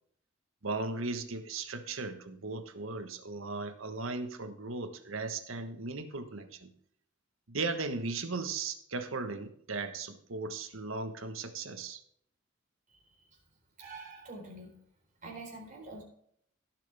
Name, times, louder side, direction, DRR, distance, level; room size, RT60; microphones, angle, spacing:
voice 1, 0.6-6.7 7.5-12.0, right 3 dB, 90° right, 8 dB, 1.3 m, -37 dB
voice 2, 12.9-13.4 13.8-14.7 15.2-16.0, right 2 dB, 40° right, 1 dB, 4.1 m, -46 dB
17.0 x 7.5 x 3.5 m, 0.67 s
head